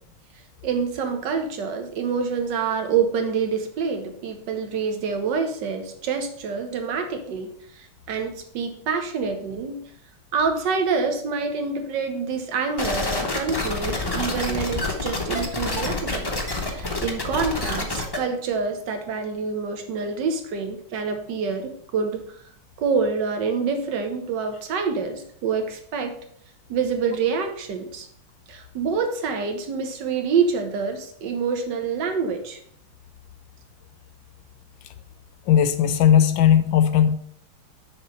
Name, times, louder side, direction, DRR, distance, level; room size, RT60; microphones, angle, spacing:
voice 1, 0.6-7.5 7.7-9.8 10.3-16.3 16.7-22.2 22.8-26.2 26.7-28.1 28.5-32.6, right 5 dB, 60° right, 6 dB, 1.5 m, -26 dB
sound 1, 12.8-18.2, left 2 dB, 35° left, 0.4 m, -27 dB
voice 2, 35.5-37.2, left 9 dB, 75° left, 12 dB, 1.2 m, -17 dB
6.7 x 4.2 x 5.3 m, 0.64 s
omnidirectional pair, 2.3 m